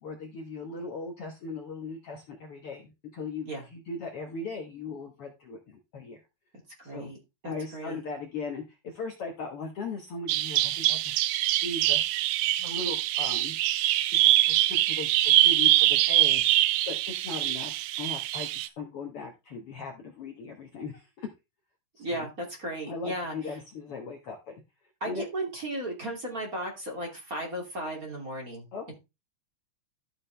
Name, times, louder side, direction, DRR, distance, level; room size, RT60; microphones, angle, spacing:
voice 1, 0.0-6.2 6.8-7.1 7.5-11.2 11.6-12.0 12.6-13.6 14.2-21.3 22.0-22.3 22.9-24.5 25.0-25.2 28.7-28.9, left 3 dB, 55° left, 2 dB, 1.8 m, -38 dB
voice 2, 6.8-7.2 7.4-8.0 22.0-23.6 25.0-28.7, right 1 dB, 25° right, 0 dB, 2.8 m, -35 dB
Bird vocalization bird call bird song, 10.3-18.7, right 15 dB, 80° right, 2.0 m, -24 dB
13.0 x 6.6 x 3.4 m, 0.25 s
omnidirectional pair, 3.8 m